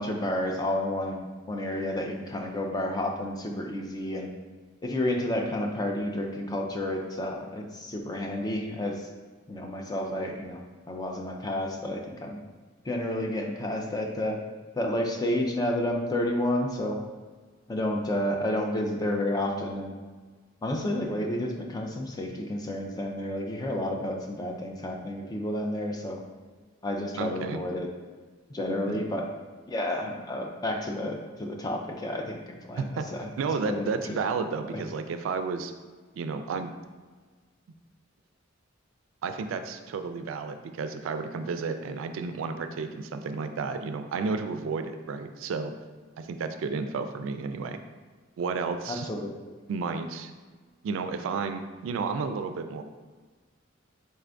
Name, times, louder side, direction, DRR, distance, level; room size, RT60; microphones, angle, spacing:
voice 1, 0.0-4.3 4.8-9.1 9.5-12.4 12.8-14.4 14.7-17.0 17.7-19.9 20.6-26.2 26.8-27.9 28.5-29.2 29.7-32.9 33.1-33.3 33.6-34.1 34.7-34.8 48.9-49.5, left 1 dB, 20° left, 2 dB, 0.4 m, -30 dB
voice 2, 27.2-27.6 28.9-29.0 32.8-33.1 33.4-35.7 36.1-36.7 39.2-45.7 46.2-47.8 48.4-49.1 49.7-50.3 50.8-52.8, right 4 dB, 80° right, 8 dB, 0.3 m, -32 dB
4.2 x 2.5 x 3.3 m, 1.4 s
head